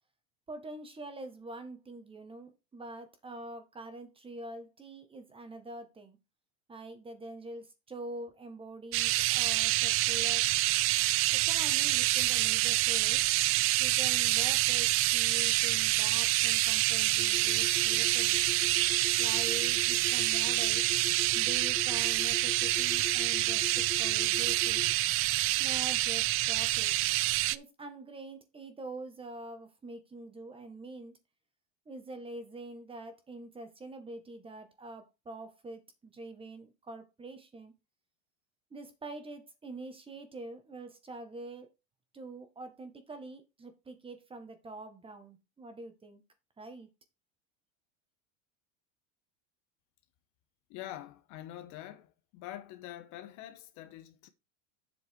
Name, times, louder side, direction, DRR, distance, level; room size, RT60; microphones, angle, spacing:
voice 1, 0.5-6.2 6.7-10.5 11.3-13.2 13.8-18.4 19.2-20.8 21.3-24.8 25.6-26.9 27.5-31.1 31.8-37.7 38.7-41.7 42.1-46.2 46.6-46.9, right 2 dB, 15° right, 1.7 m, -45 dB
sound 1, 8.9-27.6, right 18 dB, 35° right, 0.4 m, -27 dB
sound 2, 17.1-24.9, left 6 dB, 5° left, 2.5 m, -43 dB
voice 2, 50.7-54.3, left 13 dB, 50° left, 1.3 m, -45 dB
8.0 x 6.2 x 4.7 m
supercardioid pair, 140°, 39 cm